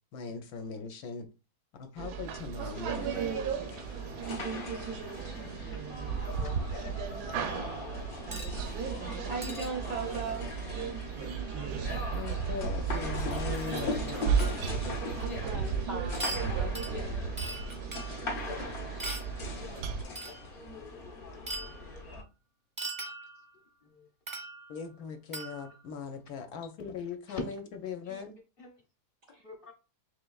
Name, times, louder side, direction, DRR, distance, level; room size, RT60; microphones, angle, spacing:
voice 1, 0.1-1.3 1.7-3.4 12.1-14.1 24.7-28.3, left 5 dB, 75° left, 1.0 m, -40 dB
sound 1, 2.0-20.0, right 6 dB, 80° right, 1.1 m, -35 dB
sound 2, 2.7-22.2, left 3 dB, 55° left, 0.6 m, -41 dB
voice 2, 3.0-3.4 5.1-5.9 6.3-7.4 7.8-7.9 14.2-14.8 15.9-16.0 18.4-18.7 19.4-19.8 20.2-20.3 23.8-24.1 27.3-27.4 28.0-28.2 28.6-28.8 29.4-29.7, left 4 dB, 40° left, 1.0 m, -45 dB
sound 3, 8.3-8.6 9.4-9.7 11.8-11.9 12.3-12.4 13.2-14.7 15.2-15.3 16.1-18.4 18.9-19.4 20.1-20.5 21.5-21.9 22.8-23.6 24.3-24.9 25.3-25.9 26.6-26.7, right 2 dB, 20° right, 0.5 m, -41 dB
voice 3, 9.2-10.5 15.2-17.2 29.3-29.4, right 4 dB, 65° right, 0.7 m, -38 dB
4.5 x 3.1 x 2.3 m
omnidirectional pair, 1.7 m